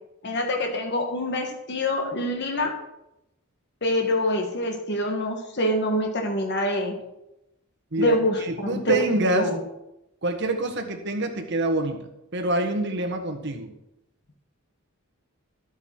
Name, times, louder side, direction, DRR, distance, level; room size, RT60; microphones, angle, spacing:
voice 1, 0.2-2.7 3.8-6.9 8.0-9.0 9.3-9.6, left 1 dB, 55° left, 3 dB, 1.5 m, -25 dB
voice 2, 7.9-9.5 10.2-12.0 12.3-13.7, right 2 dB, 55° right, 5 dB, 1.5 m, -26 dB
13.0 x 8.1 x 4.5 m, 0.88 s
head